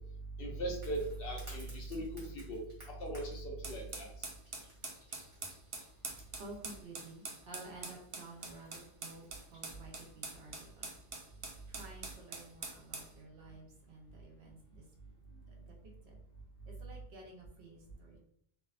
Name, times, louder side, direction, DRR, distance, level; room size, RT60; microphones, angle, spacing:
voice 1, 0.4-2.1 2.3-2.6 3.0-4.1, right 1 dB, 65° left, 0 dB, 0.8 m, -39 dB
sound 1, 0.8-9.8, right 1 dB, 30° right, 0.9 m, -59 dB
sound 2, 3.6-13.1, right 3 dB, 60° right, 0.3 m, -45 dB
voice 2, 5.2-14.9 15.3-16.2 16.6-18.2, right 2 dB, 75° right, -1 dB, 0.9 m, -53 dB
2.7 x 2.1 x 2.4 m, 0.66 s
omnidirectional pair, 1.1 m